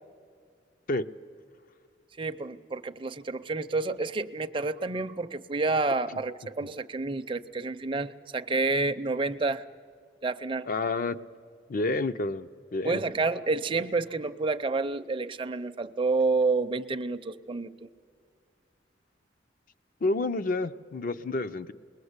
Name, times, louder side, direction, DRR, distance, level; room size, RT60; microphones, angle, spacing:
voice 1, 2.2-9.6 10.2-10.7 12.8-17.9, right 3 dB, 30° right, 8 dB, 0.5 m, -29 dB
voice 2, 10.7-11.2 11.7-13.0 20.0-21.7, left 2 dB, 50° left, 11 dB, 0.6 m, -29 dB
28.5 x 20.5 x 8.1 m, 2.2 s
head